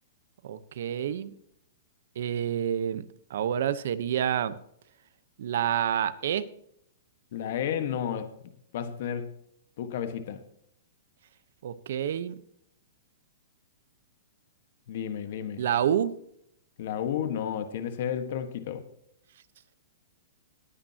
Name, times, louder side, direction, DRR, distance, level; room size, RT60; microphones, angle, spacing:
voice 1, 0.4-1.3 2.2-3.0 3.3-4.6 5.4-6.4 11.6-12.3 15.6-16.2, right 9 dB, 65° right, 14 dB, 0.9 m, -28 dB
voice 2, 7.3-8.3 8.7-9.3 9.8-10.4 14.9-15.6 16.8-18.8, left 9 dB, 55° left, 9 dB, 1.4 m, -32 dB
20.0 x 8.9 x 2.9 m, 0.71 s
hypercardioid pair, 155°, 0 cm